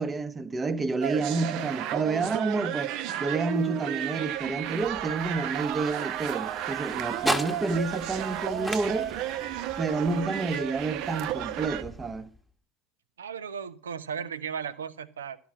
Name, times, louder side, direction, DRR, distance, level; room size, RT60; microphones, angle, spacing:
voice 1, 0.0-2.9 3.2-9.1 9.8-12.3, right 3 dB, 20° right, 1.0 m, -29 dB
sound 1, 1.0-11.8, right 12 dB, 50° right, 0.8 m, -33 dB
sound 2, 4.3-12.5, equal, ahead, 1.4 m, -38 dB
voice 2, 13.2-15.4, right 7 dB, 75° right, 0.9 m, -36 dB
12.5 x 6.1 x 7.4 m
figure-of-eight pair, 75°, 0 cm